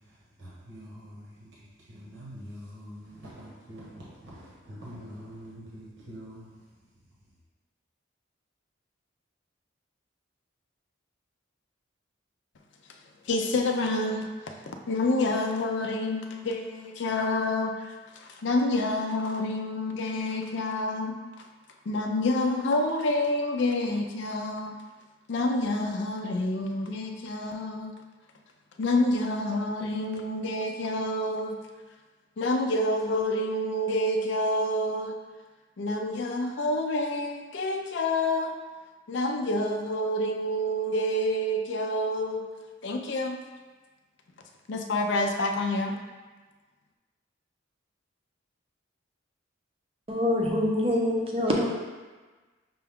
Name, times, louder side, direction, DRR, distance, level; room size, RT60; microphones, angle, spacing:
voice 1, 0.4-1.5 1.9-6.5, equal, 65° right, -6 dB, 1.1 m, -45 dB
voice 2, 13.2-21.2 21.9-24.7 25.3-28.0 28.8-31.6 32.4-35.2 35.8-38.5 39.1-42.5 42.8-43.4 44.7-46.0, left 1 dB, 65° left, 3 dB, 0.4 m, -28 dB
voice 3, 50.1-51.7, left 1 dB, 30° right, -1 dB, 0.6 m, -25 dB
5.9 x 2.3 x 3.5 m, 1.3 s
head